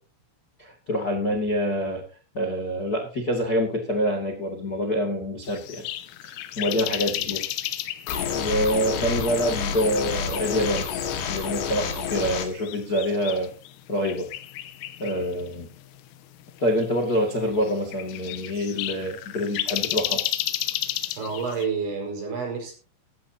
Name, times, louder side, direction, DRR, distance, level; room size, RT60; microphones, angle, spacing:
voice 1, 0.6-2.0 2.3-5.8 6.2-7.4 8.3-10.9 11.3-13.5 13.9-14.3 15.0-15.7 16.6-20.3, equal, 35° left, 2 dB, 1.5 m, -26 dB
sound 1, 5.4-21.7, left 14 dB, 85° left, 3.5 m, -34 dB
sound 2, 8.1-12.5, left 7 dB, 65° left, 4.0 m, -28 dB
voice 2, 21.2-22.7, right 5 dB, 65° right, 1 dB, 7.6 m, -30 dB
16.5 x 14.5 x 2.9 m, 0.35 s
omnidirectional pair, 5.7 m